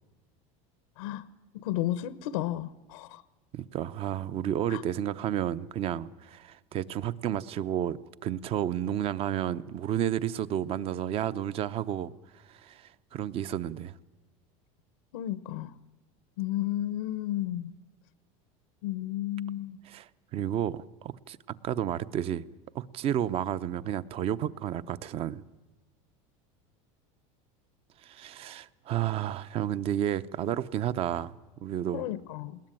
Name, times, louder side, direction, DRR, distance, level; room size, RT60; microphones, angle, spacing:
voice 1, 1.5-3.2 4.7-4.8 15.1-15.7 16.4-17.7 18.8-19.8 31.9-32.6, left 13 dB, 90° left, 0.9 m, -33 dB
voice 2, 3.5-12.1 12.5-13.9 19.9-21.4 21.6-22.4 22.7-25.4 28.0-31.3 31.6-32.0, right 10 dB, 35° right, 0.7 m, -31 dB
20.5 x 18.5 x 9.0 m
supercardioid pair, 150°, 17 cm